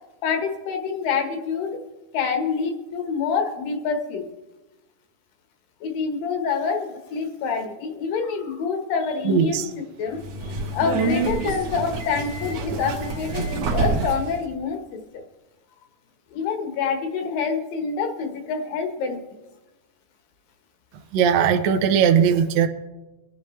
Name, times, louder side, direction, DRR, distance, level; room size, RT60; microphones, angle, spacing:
voice 1, 0.2-1.8 2.1-4.3 5.8-15.0 16.3-19.2, left 5 dB, 70° left, 5 dB, 2.9 m, -27 dB
voice 2, 9.2-9.7 21.1-22.7, right 8 dB, 80° right, 6 dB, 1.6 m, -19 dB
Subway metro underground, 10.1-14.4, right 3 dB, 60° right, 2.0 m, -27 dB
24.0 x 10.5 x 3.2 m, 1.1 s
omnidirectional pair, 4.3 m